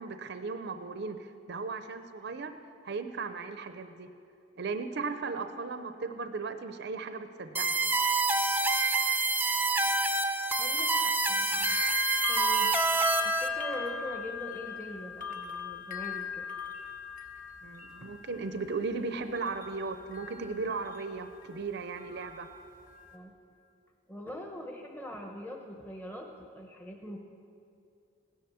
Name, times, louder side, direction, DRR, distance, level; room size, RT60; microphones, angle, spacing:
voice 1, 0.0-2.5 2.8-4.1 4.6-8.0 17.6-22.5, right 4 dB, 60° right, 9 dB, 0.6 m, -36 dB
sound 1, 7.6-13.5, right 3 dB, 10° right, 0.6 m, -27 dB
voice 2, 10.6-12.7 13.2-16.4 23.1-23.3 24.1-27.2, left 1 dB, 10° left, 1 dB, 1.0 m, -43 dB
sound 2, 11.5-21.6 22.0-23.2, left 7 dB, 45° left, 1.1 m, -39 dB
16.5 x 10.5 x 7.0 m, 2.5 s
head